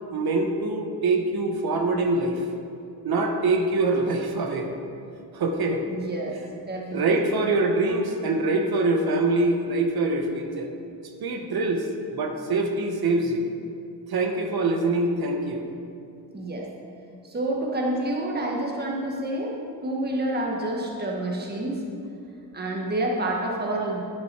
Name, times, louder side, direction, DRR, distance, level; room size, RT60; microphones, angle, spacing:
voice 1, 0.1-2.4 3.0-4.7 5.3-5.8 6.9-10.7 11.2-13.5 14.1-15.6, right 2 dB, 60° right, 4 dB, 1.1 m, -24 dB
voice 2, 5.9-7.3 16.3-16.7 17.2-19.5 19.8-21.8 22.5-24.0, right 1 dB, 25° right, -1 dB, 1.3 m, -28 dB
10.5 x 6.1 x 4.5 m, 2.5 s
cardioid pair, 80°, 41 cm